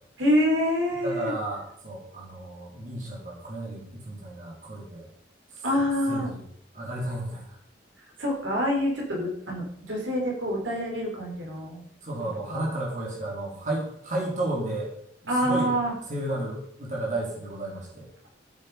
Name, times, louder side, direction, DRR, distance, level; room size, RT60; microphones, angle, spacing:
voice 1, 0.2-1.3 5.6-6.3 8.2-11.8 12.5-12.7 15.3-15.9, equal, 80° right, -1 dB, 4.8 m, -26 dB
voice 2, 0.9-5.1 5.5-5.6 6.1-6.5 6.7-7.6 12.0-14.9 15.2-15.7 16.1-18.1, right 1 dB, 40° right, -3 dB, 3.9 m, -33 dB
13.5 x 9.8 x 5.2 m, 0.68 s
head